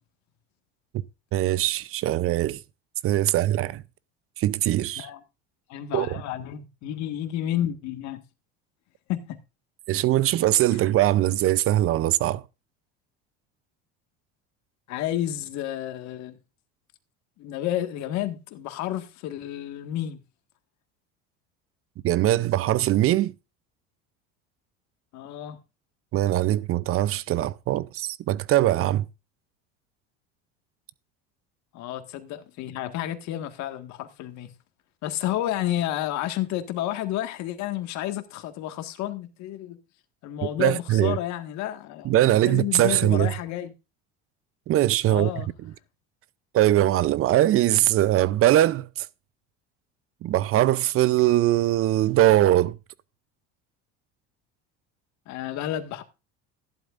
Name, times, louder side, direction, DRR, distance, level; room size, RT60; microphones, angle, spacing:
voice 1, 1.3-2.6 3.0-3.8 4.4-5.1 5.9-6.1 9.9-12.4 22.0-23.3 26.1-29.0 40.4-41.2 42.0-43.3 44.7-45.7 46.5-49.1 50.2-52.8, right 14 dB, 45° right, 0.6 m, -21 dB
voice 2, 5.7-8.2 9.1-9.4 14.9-16.4 17.4-20.2 25.1-25.6 31.7-34.5 35.0-39.8 40.2-42.1 42.4-43.7 45.1-45.5 55.3-56.0, left 12 dB, 60° left, 1.8 m, -31 dB
14.5 x 11.5 x 2.5 m
supercardioid pair, 100°, 31 cm